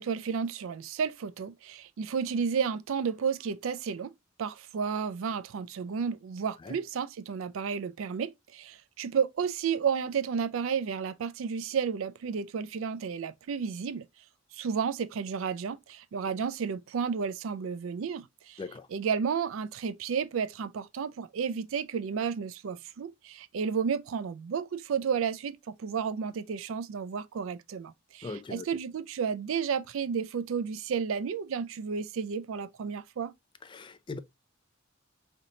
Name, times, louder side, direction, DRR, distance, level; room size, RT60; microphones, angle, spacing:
voice 1, 0.0-4.1 4.4-14.0 14.5-18.6 18.9-33.3, right 6 dB, 70° right, 0.4 m, -32 dB
voice 2, 18.6-18.9 28.2-28.8 33.6-34.2, left 3 dB, 25° left, 0.3 m, -40 dB
3.9 x 3.3 x 2.7 m
head